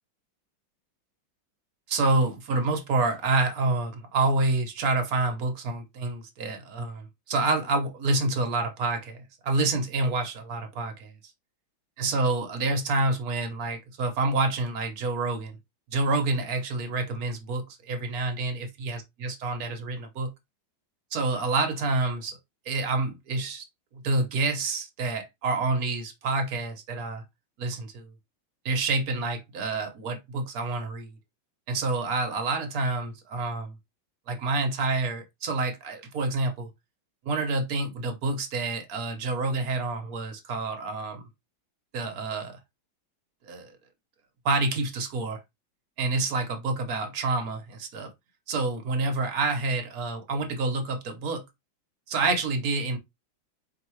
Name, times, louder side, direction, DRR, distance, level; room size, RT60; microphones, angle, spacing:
voice 1, 1.9-11.1 12.0-15.6 15.9-20.3 21.1-22.4 22.7-23.7 23.9-27.2 27.6-28.1 28.6-31.2 31.7-33.7 34.3-36.7 37.2-41.2 41.9-42.6 43.4-43.7 44.4-45.4 46.0-48.1 48.5-51.4 52.1-53.0, right 3 dB, 60° right, 1.1 m, -28 dB
4.6 x 2.9 x 3.0 m
omnidirectional pair, 2.2 m